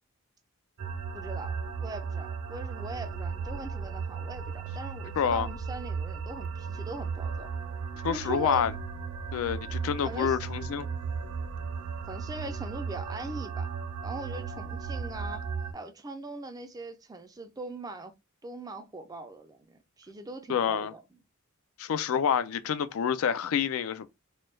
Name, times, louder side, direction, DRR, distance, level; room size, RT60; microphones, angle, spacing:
sound 1, 0.8-15.7, right 5 dB, 90° right, 0.5 m, -36 dB
voice 1, 1.1-1.5 1.8-7.5 8.1-8.7 9.6-10.4 12.1-13.7 14.0-15.4 15.7-18.1 18.4-21.0, right 2 dB, 15° right, 0.4 m, -41 dB
voice 2, 5.2-5.5 8.0-8.7 9.3-10.9 20.5-20.9 21.8-24.1, left 7 dB, 70° left, 0.3 m, -27 dB
3.1 x 2.2 x 3.1 m
head